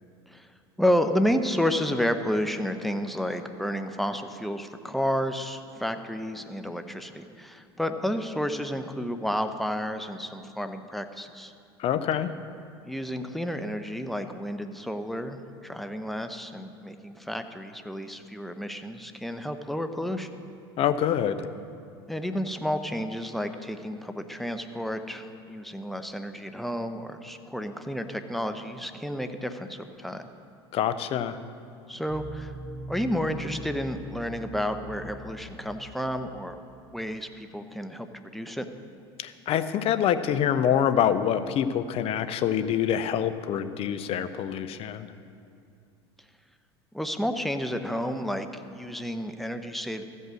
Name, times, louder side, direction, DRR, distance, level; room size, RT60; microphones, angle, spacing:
voice 1, 0.8-11.5 12.8-20.3 22.1-30.3 31.9-32.5 32.9-36.6 36.9-38.1 38.3-38.7 46.9-50.0, equal, ahead, 7 dB, 0.7 m, -31 dB
voice 2, 11.8-12.3 20.8-21.5 30.7-31.4 39.2-45.1, left 9 dB, 45° left, 11 dB, 0.6 m, -26 dB
sound 1, 32.1-37.1, right 1 dB, 65° right, 2.5 m, -42 dB
14.5 x 5.5 x 6.3 m, 2.4 s
hypercardioid pair, 80°, 14 cm